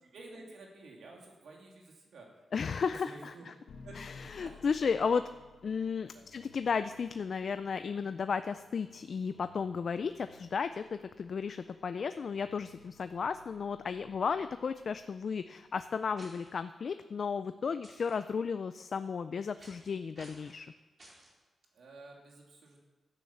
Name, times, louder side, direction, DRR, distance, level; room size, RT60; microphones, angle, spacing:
voice 1, 0.0-2.4 2.9-3.5 3.8-4.7 5.2-5.3 6.1-6.3 21.7-22.8, right 3 dB, 80° right, 0 dB, 2.9 m, -52 dB
voice 2, 2.5-3.3 4.0-5.3 5.6-20.7, left 6 dB, 60° left, 11 dB, 0.4 m, -34 dB
sound 1, 3.7-15.8, left 4 dB, 85° left, 1.4 m, -58 dB
sound 2, 16.2-16.5 17.8-18.1 19.6-19.9 20.1-20.5 21.0-21.3, right 1 dB, 45° right, 4.8 m, -54 dB
11.0 x 9.4 x 7.2 m, 1.2 s
cardioid pair, 90°, 0 cm